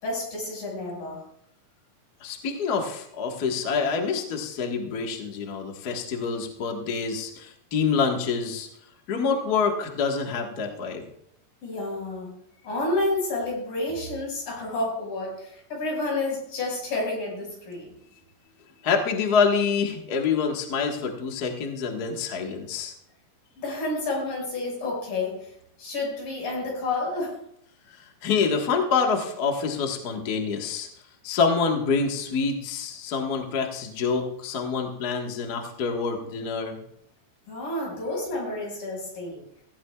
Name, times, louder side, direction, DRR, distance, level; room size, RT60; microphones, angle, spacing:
voice 1, 0.0-1.2 11.6-12.3 12.6-17.9 23.6-25.5 25.8-27.3 37.5-39.4, left 2 dB, 60° left, -2 dB, 7.4 m, -30 dB
voice 2, 2.2-8.7 9.1-11.0 18.8-22.9 27.9-30.9 31.2-36.8, left 5 dB, 90° left, 2 dB, 0.8 m, -26 dB
17.5 x 15.5 x 2.4 m, 0.72 s
omnidirectional pair, 4.5 m